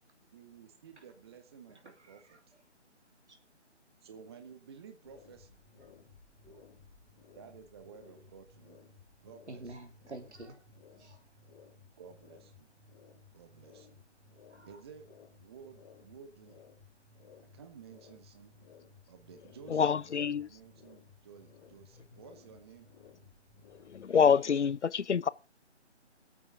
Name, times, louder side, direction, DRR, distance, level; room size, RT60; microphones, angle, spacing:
voice 1, 0.3-2.4 4.0-5.6 7.3-8.9 9.2-9.6 12.0-12.7 13.3-14.0 14.7-15.0 15.4-16.7 17.5-18.5 19.1-22.9, right 6 dB, 20° right, 1.0 m, -53 dB
voice 2, 1.7-2.6 3.3-3.4 5.8-6.0 6.4-6.7 8.0-8.2 9.5-11.3 14.4-14.8 15.6-15.7, right 2 dB, 70° right, 3.3 m, -51 dB
sound 1, 5.0-24.3, left 5 dB, 20° left, 4.4 m, -59 dB
voice 3, 19.7-20.5 23.9-25.3, left 7 dB, 75° left, 0.7 m, -26 dB
23.0 x 8.5 x 3.7 m
figure-of-eight pair, 150°, 35 cm